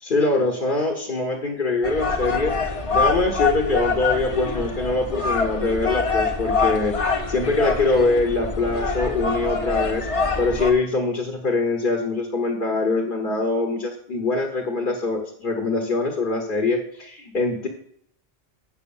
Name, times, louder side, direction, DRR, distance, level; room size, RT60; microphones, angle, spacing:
voice 1, 0.0-2.5 2.9-17.7, left 3 dB, 55° left, 2 dB, 1.3 m, -23 dB
sound 1, 1.8-10.7, left 4 dB, 35° left, 0.9 m, -25 dB
7.7 x 6.3 x 7.1 m, 0.67 s
omnidirectional pair, 1.1 m